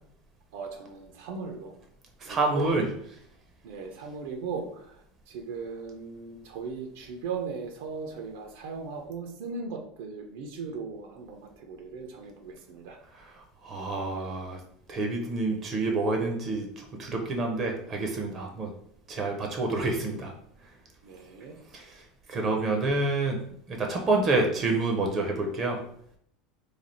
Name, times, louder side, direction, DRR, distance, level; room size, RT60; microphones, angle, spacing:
voice 1, 0.5-1.7 2.2-2.9 3.6-5.0 5.3-13.0 21.0-21.5, right 5 dB, 70° right, 3 dB, 0.6 m, -38 dB
voice 2, 2.2-2.9 13.6-14.6 14.9-18.7 19.1-20.3 21.7-22.0 22.3-23.4 23.7-25.8, right 2 dB, 25° right, 2 dB, 0.6 m, -28 dB
3.2 x 2.4 x 4.0 m, 0.67 s
supercardioid pair, 155°, 0 cm